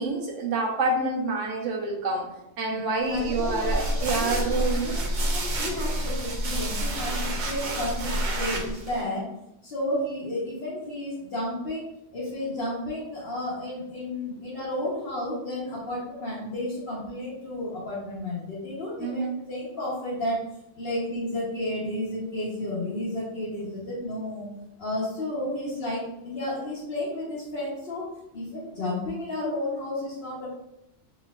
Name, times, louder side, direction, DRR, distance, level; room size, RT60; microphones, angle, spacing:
voice 1, 0.0-2.3 2.6-5.0 19.0-19.4, right 3 dB, 85° right, 0 dB, 1.2 m, -27 dB
voice 2, 2.7-9.3 9.6-11.8 12.1-20.5 20.8-24.5 24.8-28.1 28.3-30.5, left 1 dB, 50° left, -8 dB, 1.2 m, -32 dB
sound 1, 3.1-9.0, right 1 dB, 50° right, 0.6 m, -29 dB
4.3 x 3.7 x 2.4 m, 0.84 s
omnidirectional pair, 1.3 m